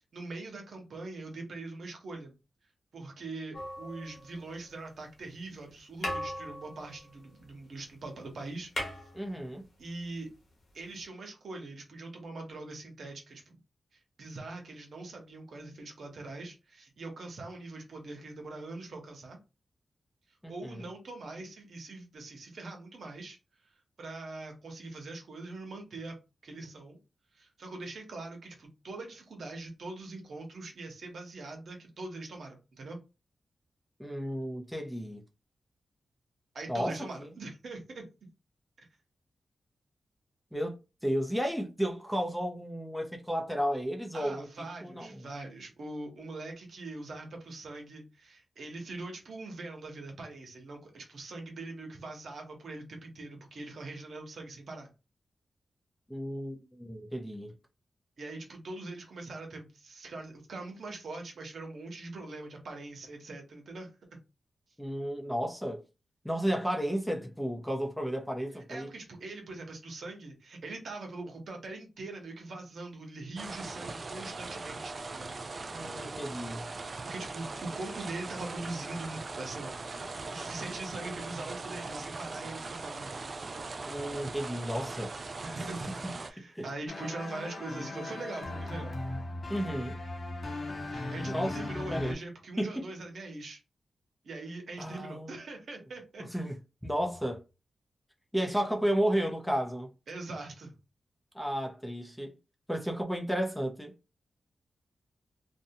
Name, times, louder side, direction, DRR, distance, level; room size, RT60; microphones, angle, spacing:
voice 1, 0.1-2.3 2.9-8.7 9.8-10.3 10.7-13.6 14.2-19.4 20.5-23.4 24.0-26.2 26.4-27.0 27.3-33.0 36.5-38.0 44.1-54.9 58.2-63.9 68.7-75.3 77.0-83.4 85.4-89.0 90.9-93.6 94.2-96.2 100.1-100.7, right 2 dB, 75° right, 0.9 m, -42 dB
sound 1, 3.5-4.7 5.6-5.7 6.0-7.9 8.1-8.2 8.5-9.9 11.0-11.1, left 1 dB, 75° left, 1.1 m, -39 dB
voice 2, 9.1-9.7 20.4-20.9 34.0-35.2 36.7-37.3 40.5-40.7 41.0-45.3 56.1-57.5 64.8-65.8 66.2-68.9 75.7-76.7 83.9-85.1 86.0-86.7 89.5-90.0 91.3-91.6 91.9-92.2 92.6-92.9 94.8-95.3 96.2-96.6 96.8-97.4 98.3-99.9 101.3-102.3 102.7-103.9, equal, 5° left, 0.6 m, -33 dB
sound 2, 73.4-86.3, right 3 dB, 50° right, 0.3 m, -40 dB
sound 3, 86.9-92.1, left 2 dB, 45° left, 0.8 m, -37 dB
2.6 x 2.2 x 2.7 m
cardioid pair, 80°, 0 cm